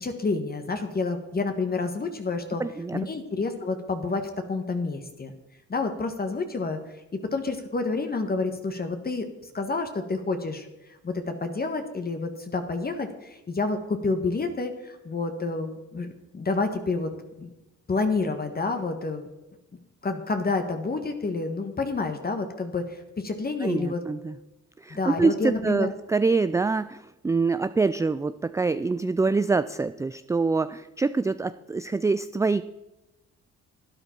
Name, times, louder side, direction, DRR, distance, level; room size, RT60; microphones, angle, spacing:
voice 1, 0.0-2.6 2.9-5.3 5.7-6.8 7.3-16.1 16.3-17.1 17.4-17.5 17.9-19.3 20.0-24.0 24.9-25.9, left 3 dB, 30° left, 6 dB, 1.4 m, -29 dB
voice 2, 2.6-3.0 23.6-24.4 24.8-32.6, right 4 dB, 10° right, 13 dB, 0.3 m, -25 dB
12.0 x 10.0 x 4.5 m, 1.0 s
cardioid pair, 90°, 30 cm